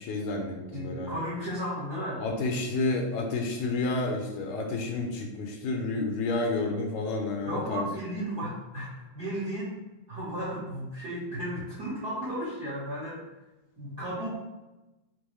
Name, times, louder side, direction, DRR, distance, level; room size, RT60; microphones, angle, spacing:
voice 1, 0.0-1.2 2.2-7.9, left 2 dB, 75° left, 2 dB, 1.9 m, -30 dB
voice 2, 0.7-2.2 7.4-9.8 10.1-13.3 13.8-14.3, equal, 55° right, -10 dB, 1.0 m, -34 dB
5.2 x 2.1 x 4.5 m, 1.0 s
omnidirectional pair, 3.4 m